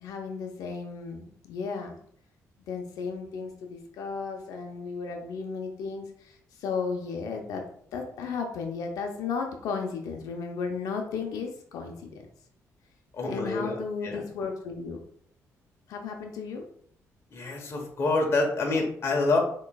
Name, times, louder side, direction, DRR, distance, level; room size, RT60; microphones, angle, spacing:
voice 1, 0.0-2.0 2.7-7.6 7.9-12.2 13.3-15.0 15.9-16.6, left 5 dB, 85° left, 3 dB, 0.7 m, -34 dB
voice 2, 13.1-13.8 14.0-14.2 17.3-19.4, left 3 dB, 45° left, 0 dB, 1.1 m, -26 dB
6.4 x 3.1 x 2.3 m, 0.62 s
cardioid pair, 105°, 6 cm